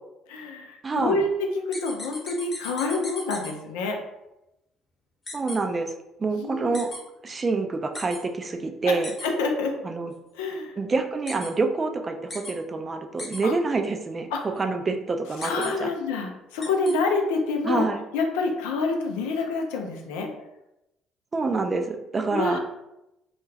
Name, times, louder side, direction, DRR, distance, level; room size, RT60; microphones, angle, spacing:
voice 1, 0.3-4.0 6.3-6.8 8.9-9.8 10.3-10.7 13.4-13.5 14.3-14.4 15.4-17.9 18.1-20.3 22.3-22.6, left 3 dB, 85° left, 3 dB, 0.4 m, -27 dB
voice 2, 0.8-1.2 5.3-5.9 6.2-6.9 7.2-9.1 9.8-10.1 10.8-14.3 14.6-15.9 17.6-18.0 21.3-22.6, right 3 dB, 35° right, 6 dB, 0.4 m, -27 dB
sound 1, 1.7-3.5 5.3-5.6 6.7-7.0 7.9-8.2 9.0-9.3 11.3-11.5 12.3-12.5 13.2-13.4 15.4-15.7 16.6-16.9, left 2 dB, 30° left, 0.9 m, -36 dB
2.3 x 2.2 x 3.2 m, 0.90 s
hypercardioid pair, 60°, 0 cm